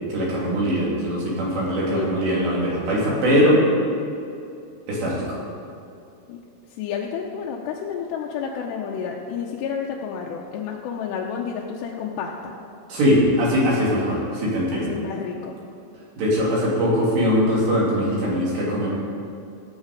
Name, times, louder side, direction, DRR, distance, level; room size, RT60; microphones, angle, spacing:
voice 1, 0.1-3.6 4.9-5.4 12.9-14.9 16.2-18.9, equal, 65° right, -5 dB, 4.9 m, -21 dB
voice 2, 6.7-12.5 14.7-15.6, left 7 dB, 80° left, -1 dB, 2.6 m, -30 dB
17.5 x 7.4 x 5.0 m, 2.6 s
omnidirectional pair, 5.5 m